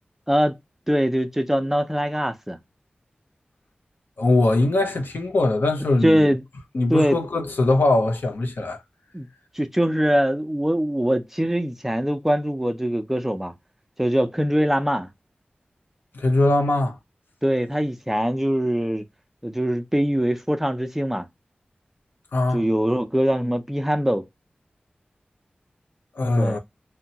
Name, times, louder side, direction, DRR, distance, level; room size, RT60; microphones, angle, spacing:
voice 1, 0.9-2.6 6.0-6.4 6.9-7.2 9.1-9.3 9.6-13.5 14.0-15.1 17.4-19.0 19.4-21.3 22.5-24.2 26.4-26.6, equal, 10° right, 0.4 m, -22 dB
voice 2, 4.2-6.3 6.7-8.8 16.1-17.0 22.3-22.6 26.2-26.6, left 2 dB, 85° left, 0.7 m, -21 dB
2.8 x 2.2 x 2.7 m
wide cardioid pair, 80°, 3 cm